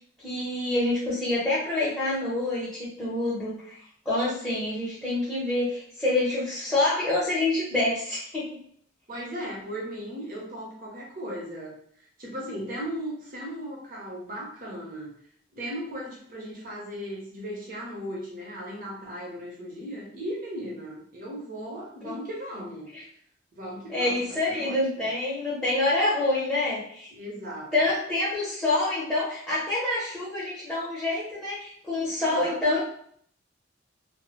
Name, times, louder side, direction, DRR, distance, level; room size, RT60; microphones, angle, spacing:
voice 1, 0.2-3.8 4.0-8.5 22.0-22.1 23.9-27.1 27.7-32.8, left 2 dB, 5° left, -10 dB, 0.7 m, -27 dB
voice 2, 9.1-11.8 12.2-15.1 15.5-22.9 23.5-25.1 27.1-27.9 32.2-32.8, equal, 45° right, -3 dB, 0.7 m, -37 dB
2.1 x 2.0 x 3.0 m, 0.62 s
head